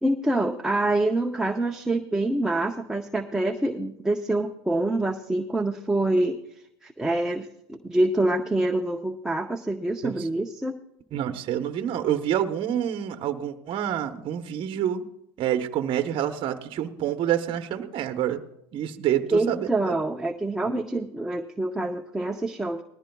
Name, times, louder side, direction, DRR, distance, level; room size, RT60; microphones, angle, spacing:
voice 1, 0.0-6.4 6.8-10.7 19.3-22.8, right 2 dB, 5° right, 2 dB, 0.6 m, -26 dB
voice 2, 11.1-15.0 15.4-18.4 18.7-20.0, right 10 dB, 40° right, 7 dB, 0.9 m, -27 dB
19.5 x 14.5 x 2.3 m, 0.79 s
supercardioid pair, 130°, 14 cm